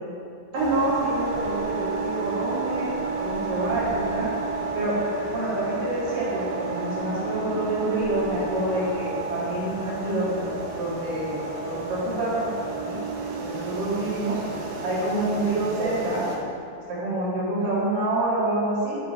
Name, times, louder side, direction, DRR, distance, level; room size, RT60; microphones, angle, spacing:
voice 1, 0.5-4.3 4.7-5.0 5.3-10.5 10.8-13.0 13.3-14.4 14.8-16.3 16.9-19.0, right 2 dB, 55° right, -9 dB, 2.8 m, -27 dB
sound 1, 0.5-16.4, right 3 dB, 70° right, 3.0 m, -31 dB
11.5 x 5.3 x 3.5 m, 2.6 s
omnidirectional pair, 5.2 m